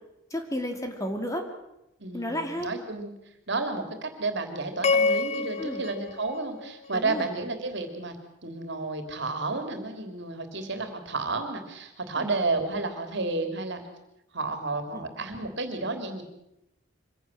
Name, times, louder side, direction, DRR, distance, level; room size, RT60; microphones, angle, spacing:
voice 1, 0.3-1.4 2.1-2.7 5.6-5.8 6.9-7.3 12.2-12.3 14.9-15.0, equal, 15° left, 5 dB, 2.6 m, -32 dB
voice 2, 2.0-3.1 3.5-8.2 8.4-13.8 14.3-16.2, right 3 dB, 60° right, 7 dB, 3.4 m, -31 dB
sound 1, 4.8-7.2, left 4 dB, 35° left, 0.7 m, -28 dB
24.5 x 17.0 x 7.8 m, 0.87 s
head